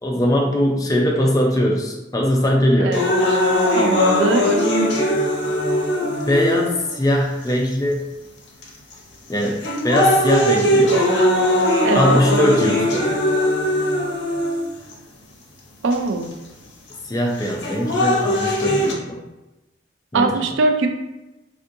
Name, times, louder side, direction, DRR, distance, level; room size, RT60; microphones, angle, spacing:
voice 1, 0.0-3.0 6.3-8.1 9.3-11.0 11.9-13.1 17.1-19.2 20.1-20.4, equal, 20° left, 0 dB, 0.4 m, -20 dB
sound 1, 2.9-6.9 7.7-7.8 8.6-8.9 9.4-14.9 15.9-16.0 17.4-18.9, left 1 dB, 70° left, 0.7 m, -19 dB
voice 2, 3.7-4.5 11.8-12.2 15.8-16.3 20.1-20.9, right 3 dB, 80° right, 6 dB, 0.4 m, -21 dB
3.4 x 2.5 x 2.6 m, 1.0 s
head